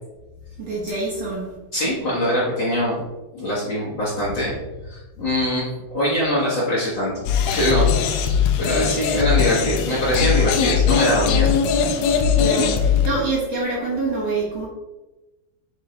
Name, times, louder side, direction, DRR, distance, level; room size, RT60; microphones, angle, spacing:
voice 1, 0.6-1.5 12.4-14.7, right 3 dB, 65° right, -6 dB, 1.6 m, -26 dB
voice 2, 1.7-3.0 3.3-4.5 4.8-7.9 8.1-11.5, equal, 70° left, -8 dB, 1.1 m, -23 dB
sound 1, 7.3-13.1, left 7 dB, 90° left, 2.1 m, -20 dB
9.3 x 3.4 x 3.8 m, 1.1 s
omnidirectional pair, 4.9 m